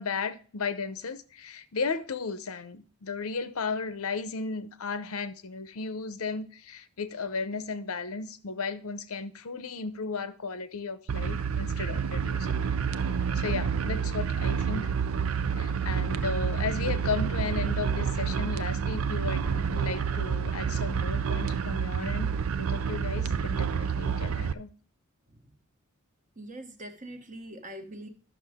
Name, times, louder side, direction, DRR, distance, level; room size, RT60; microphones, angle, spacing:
voice 1, 0.0-12.7 13.3-14.9 15.5-24.7, left 4 dB, 85° left, 0.7 m, -35 dB
sound 1, 11.1-24.5, right 6 dB, 70° right, 0.5 m, -29 dB
voice 2, 26.4-28.1, right 1 dB, 35° right, 1.1 m, -42 dB
11.0 x 6.3 x 3.5 m
head